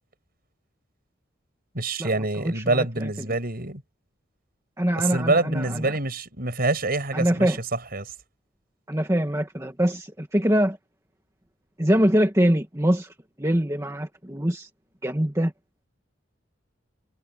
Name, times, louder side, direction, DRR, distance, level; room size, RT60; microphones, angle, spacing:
voice 1, 1.7-3.8 5.0-8.1, right 2 dB, 50° right, 6.1 m, -26 dB
voice 2, 2.4-3.1 4.8-5.9 7.1-7.6 8.9-10.8 11.8-14.7 15.0-15.5, equal, 15° right, 1.8 m, -23 dB
head